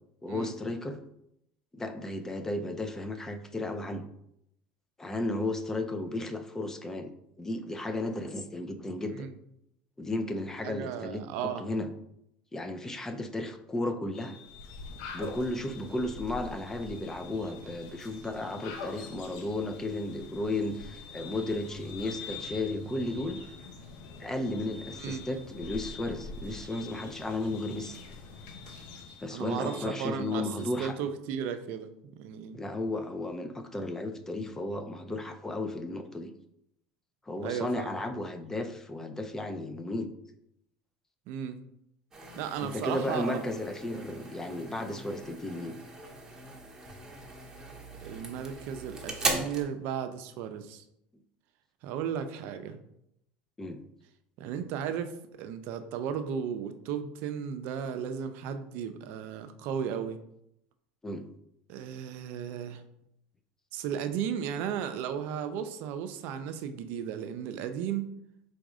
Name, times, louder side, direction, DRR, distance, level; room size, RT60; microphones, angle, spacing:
voice 1, 0.2-1.0 1.7-4.0 5.0-7.1 7.4-9.3 10.0-11.9 12.5-14.4 15.1-23.4 24.2-28.0 29.2-30.9 32.5-36.3 37.3-40.1 42.6-45.7 53.6-53.8 61.0-61.2, left 2 dB, 15° left, 7 dB, 0.4 m, -34 dB
voice 2, 10.6-11.6 25.0-25.2 29.3-31.9 32.2-32.6 37.4-37.9 41.3-41.6 42.4-43.5 48.0-50.8 51.8-52.8 54.4-55.1 55.4-60.2 61.7-62.8 63.7-68.1, right 8 dB, 65° right, 9 dB, 0.4 m, -35 dB
sound 1, 14.1-30.9, left 6 dB, 45° left, 1.0 m, -50 dB
sound 2, 14.4-29.3, left 3 dB, 75° left, 0.6 m, -46 dB
sound 3, 42.1-49.6, right 2 dB, 15° right, 0.9 m, -38 dB
4.0 x 2.5 x 4.7 m, 0.78 s
supercardioid pair, 120°, 4 cm